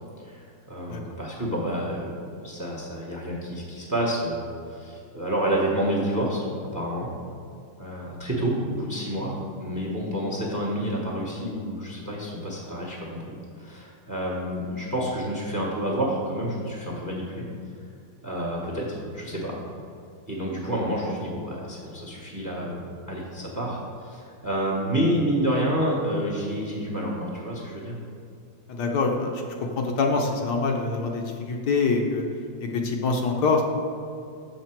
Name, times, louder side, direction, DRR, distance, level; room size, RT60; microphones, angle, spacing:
voice 1, 0.2-2.1 2.4-7.1 7.8-17.5 18.2-19.6 20.3-28.0, equal, 15° right, -3 dB, 0.6 m, -29 dB
voice 2, 28.7-29.4 29.8-32.2 32.6-33.6, left 4 dB, 70° left, 2 dB, 1.2 m, -25 dB
6.7 x 5.8 x 4.4 m, 2.5 s
omnidirectional pair, 2.0 m